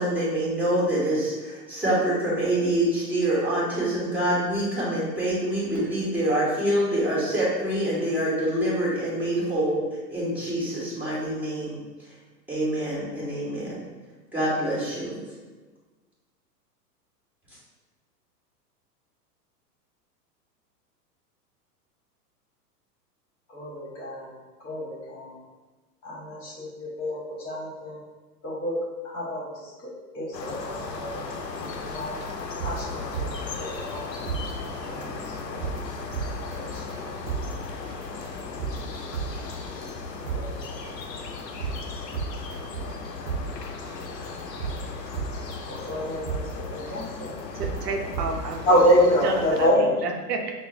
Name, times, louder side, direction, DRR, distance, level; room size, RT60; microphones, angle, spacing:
voice 1, 0.0-9.8 10.1-11.8 12.5-13.8 14.3-15.1, right 1 dB, 5° right, -7 dB, 1.3 m, -26 dB
voice 2, 23.5-24.3 24.6-25.4 26.0-28.0 28.4-28.8 29.0-32.2 32.6-34.0 34.6-35.8 36.3-37.1 40.3-40.9 44.3-44.4 44.7-44.9 45.7-47.4 48.7-49.9, equal, 30° left, -6 dB, 1.4 m, -28 dB
sound 1, 30.3-49.7, left 4 dB, 85° left, 0.6 m, -36 dB
sound 2, 31.9-32.0 32.4-33.5 33.9-34.0 34.3-34.4 34.9-35.0 35.4-35.8 36.1-36.6 36.9-37.0 37.3-37.4 37.9-38.0 38.4-39.5 39.9-40.0 40.3-40.4 40.9-41.0 41.4-41.8 42.1-43.0 43.3-43.4 43.9-44.0 44.4-45.5 45.9-46.0 46.3-46.4 46.9-47.0 47.4-47.8 48.1-48.6 48.9-49.0, right 6 dB, 35° right, 0.4 m, -31 dB
voice 3, 47.5-48.6 49.2-50.5, right 4 dB, 75° right, 2 dB, 0.6 m, -31 dB
5.9 x 2.1 x 2.4 m, 1.3 s
figure-of-eight pair, 100°, 49 cm